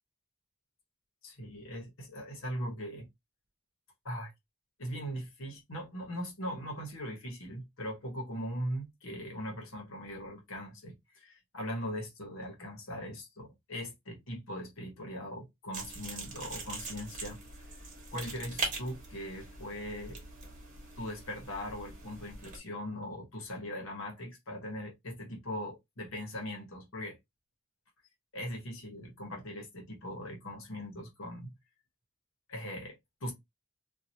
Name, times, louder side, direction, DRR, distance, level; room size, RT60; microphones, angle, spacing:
voice 1, 1.2-3.1 4.0-4.3 4.8-17.4 18.1-20.2 21.0-27.2 28.3-31.5 32.5-33.3, equal, 70° left, 1.3 m, -40 dB
sound 1, 15.7-22.6, right 3 dB, 40° right, 1.3 m, -42 dB
2.9 x 2.7 x 2.7 m
head